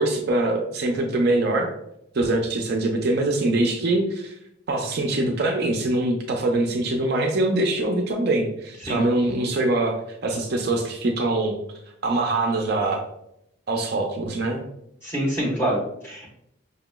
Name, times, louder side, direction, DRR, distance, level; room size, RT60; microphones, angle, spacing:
voice 1, 0.0-1.7 2.1-4.3 4.7-11.6 12.0-13.0 13.7-14.6, right 2 dB, 50° right, 2 dB, 0.4 m, -23 dB
voice 2, 15.0-16.3, right 1 dB, 10° left, -5 dB, 1.1 m, -26 dB
5.2 x 2.9 x 2.2 m, 0.79 s
head